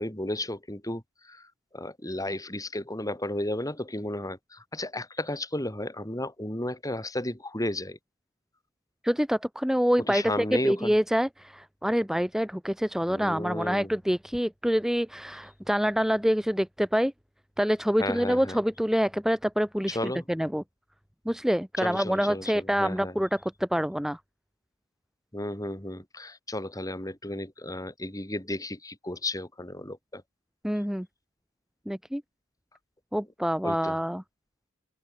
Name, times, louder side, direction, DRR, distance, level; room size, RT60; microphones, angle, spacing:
voice 1, 0.0-1.5 1.7-8.0 10.1-10.9 13.1-13.9 18.0-18.6 19.9-20.2 21.8-23.2 25.3-30.2 33.6-34.0, left 1 dB, 15° left, 4.6 m, -33 dB
voice 2, 9.0-17.1 17.6-20.6 21.2-24.2 30.6-31.1 31.9-32.2 33.1-34.2, equal, ahead, 1.3 m, -26 dB
open air
head